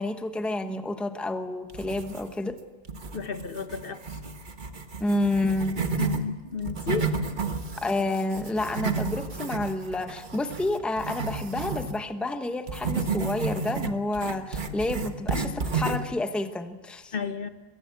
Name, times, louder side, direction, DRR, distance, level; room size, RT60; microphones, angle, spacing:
voice 1, 0.0-2.6 5.0-5.8 7.8-17.1, left 2 dB, ahead, 9 dB, 0.9 m, -29 dB
sound 1, 1.7-2.5 2.9-6.2 6.6-12.0 12.7-16.1, right 4 dB, 50° right, 1.4 m, -31 dB
voice 2, 3.1-4.2 6.0-7.1 17.1-17.5, left 6 dB, 60° left, 10 dB, 1.2 m, -32 dB
22.5 x 15.5 x 8.2 m, 1.3 s
omnidirectional pair, 1.1 m